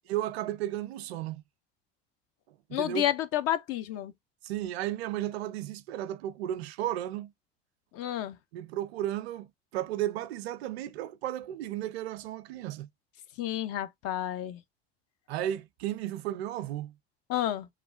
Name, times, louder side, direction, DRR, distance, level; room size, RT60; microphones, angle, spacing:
voice 1, 0.1-1.4 2.7-3.1 4.4-7.3 8.5-12.9 15.3-16.9, right 12 dB, 80° right, 0.5 m, -34 dB
voice 2, 2.7-4.1 7.9-8.4 13.4-14.6 17.3-17.7, left 12 dB, 50° left, 0.5 m, -30 dB
3.0 x 2.1 x 2.4 m
hypercardioid pair, 80°, 32 cm